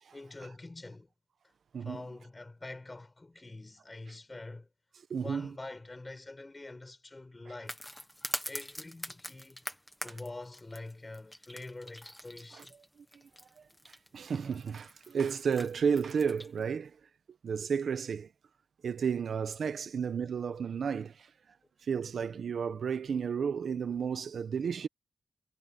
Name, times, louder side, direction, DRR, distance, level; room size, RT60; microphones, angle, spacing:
voice 1, 0.1-1.1 1.8-4.7 5.1-7.8 8.5-9.6 10.0-12.7, left 2 dB, 20° left, 6.5 m, -45 dB
voice 2, 5.1-5.5 14.1-16.9 17.4-18.3 18.8-21.1 21.9-24.9, right 6 dB, 90° right, 1.1 m, -32 dB
sound 1, 7.7-16.6, equal, 5° left, 1.5 m, -43 dB
wide cardioid pair, 160°, 0 cm